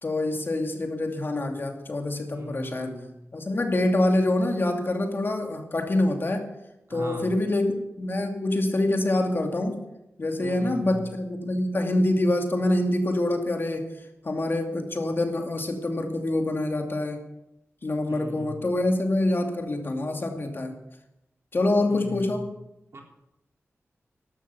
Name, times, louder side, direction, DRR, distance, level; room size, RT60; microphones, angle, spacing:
voice 1, 0.0-3.0 3.3-6.5 6.9-9.8 10.2-13.9 14.2-17.2 17.8-20.8 21.5-22.5, left 1 dB, 45° left, 3 dB, 2.5 m, -26 dB
voice 2, 2.3-3.1 6.9-7.4 10.4-11.0 18.1-18.6 21.9-22.5 22.9-23.0, right 1 dB, 60° right, 1 dB, 3.7 m, -39 dB
13.0 x 12.0 x 7.2 m, 0.87 s
wide cardioid pair, 80°, 5 cm